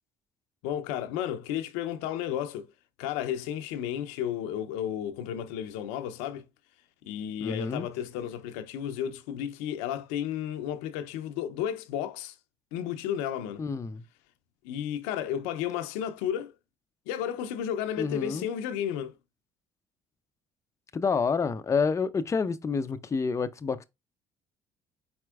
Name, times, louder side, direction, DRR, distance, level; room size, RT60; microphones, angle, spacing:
voice 1, 0.6-2.7 3.0-6.4 7.0-12.4 12.7-13.7 14.6-16.5 17.1-19.1, left 10 dB, 85° left, 0.5 m, -33 dB
voice 2, 7.4-7.9 13.6-14.0 18.0-18.5 20.9-23.8, left 5 dB, 25° left, 0.5 m, -28 dB
4.4 x 4.2 x 2.3 m
supercardioid pair, 70°, 11 cm